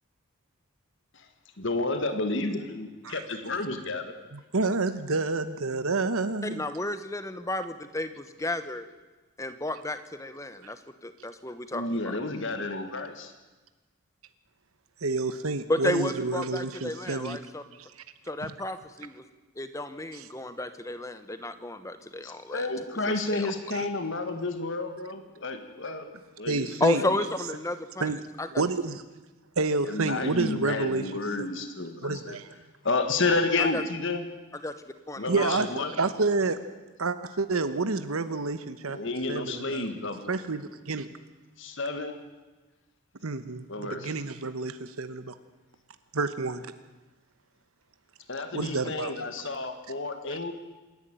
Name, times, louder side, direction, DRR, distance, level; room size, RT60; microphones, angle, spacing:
voice 1, 1.6-4.1 11.7-13.3 22.2-26.1 26.4-27.1 29.8-32.4 32.8-34.3 35.2-35.9 38.9-40.3 41.6-42.2 43.7-44.1 48.3-50.5, left 3 dB, 55° left, 7 dB, 1.7 m, -31 dB
voice 2, 4.5-6.7 15.0-17.4 18.4-18.5 20.1-20.2 23.7-23.9 26.5-27.0 28.0-28.2 28.6-29.0 29.6-31.0 31.4-31.5 32.0-32.5 35.3-35.7 36.0-36.6 37.0-39.0 39.3-39.9 40.3-41.1 43.2-45.3 46.1-46.6 48.5-49.1, right 3 dB, 75° right, 11 dB, 1.0 m, -29 dB
voice 3, 6.4-8.9 9.4-12.1 15.7-17.6 18.3-19.2 19.6-22.7 23.0-23.5 26.8-28.0 28.4-28.5 33.6-33.8 34.5-34.7 35.1-35.6, left 2 dB, 15° left, 10 dB, 1.1 m, -32 dB
26.5 x 11.0 x 9.1 m, 1.2 s
head